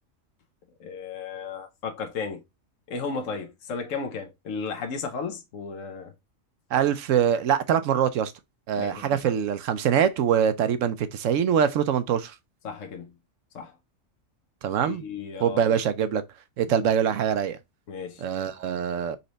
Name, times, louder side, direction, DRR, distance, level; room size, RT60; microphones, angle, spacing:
voice 1, 0.8-2.4 2.9-6.1 8.8-9.2 12.6-13.1 13.5-13.7 14.8-15.6 16.8-16.9 17.9-18.2, left 5 dB, 70° left, 1.2 m, -34 dB
voice 2, 6.7-8.3 8.7-12.3 14.6-15.0 15.4-16.2 16.6-17.6 18.2-19.2, right 8 dB, 70° right, 0.9 m, -24 dB
4.2 x 3.3 x 3.9 m
omnidirectional pair, 1.4 m